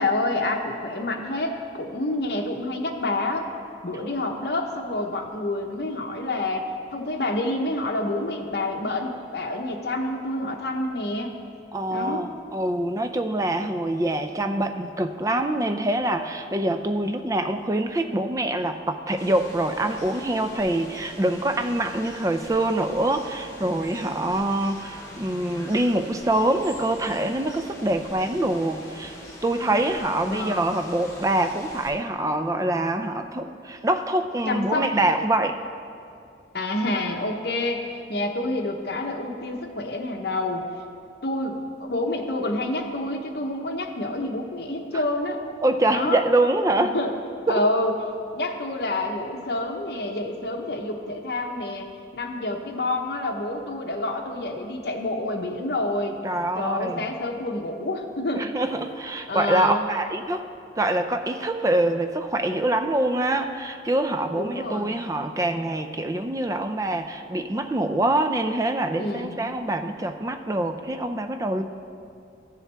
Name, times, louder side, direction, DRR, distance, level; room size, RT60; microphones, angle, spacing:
voice 1, 0.0-3.5 3.8-11.3 11.9-12.3 30.3-30.7 34.5-34.9 36.5-40.7 41.2-45.4 45.9-46.2 46.9-47.1 47.5-48.0 48.3-51.9 52.1-56.1 56.5-58.5 59.3-59.9 64.3-64.9 69.0-69.3, left 2 dB, 60° left, 2 dB, 0.9 m, -28 dB
voice 2, 11.7-29.1 29.4-35.6 45.6-46.9 47.5-47.6 56.2-57.1 58.4-60.5 60.8-71.6, right 1 dB, 20° right, 7 dB, 0.4 m, -25 dB
sound 1, 19.2-31.9, left 1 dB, 15° left, 1.2 m, -43 dB
14.5 x 7.3 x 3.4 m, 2.4 s
head